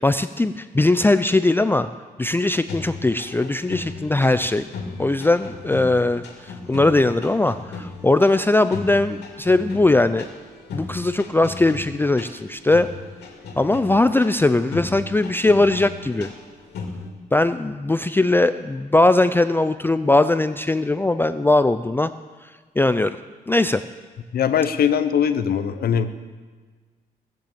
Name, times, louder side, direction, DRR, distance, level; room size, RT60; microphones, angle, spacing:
voice 1, 0.0-1.9 2.2-4.6 5.0-10.3 10.7-12.9 13.6-16.3 17.3-22.1 22.8-23.2 23.5-23.8, left 2 dB, 15° left, 11 dB, 0.4 m, -20 dB
sound 1, 2.7-17.1, left 4 dB, 90° left, 2.6 m, -36 dB
voice 2, 24.3-26.1, left 8 dB, 65° left, 10 dB, 0.8 m, -21 dB
17.5 x 7.7 x 7.4 m, 1.4 s
cardioid pair, 100°, 17 cm